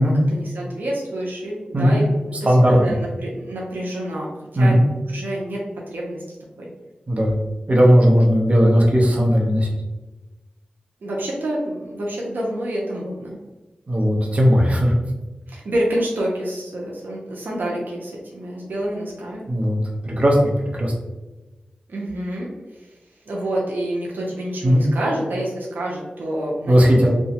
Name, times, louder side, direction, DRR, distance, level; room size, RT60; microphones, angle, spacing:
voice 1, 0.3-4.8 5.0-5.6 5.9-6.2 6.6-6.7 11.0-13.4 15.5-19.4 21.9-22.5 23.3-27.1, right 1 dB, 85° right, -3 dB, 0.6 m, -27 dB
voice 2, 7.7-9.7 13.9-14.9 19.5-19.8 20.0-20.5 20.8-20.9 24.6-24.8 26.7-27.1, equal, 45° right, -2 dB, 0.8 m, -16 dB
2.9 x 2.2 x 2.8 m, 1.1 s
cardioid pair, 50°, 3 cm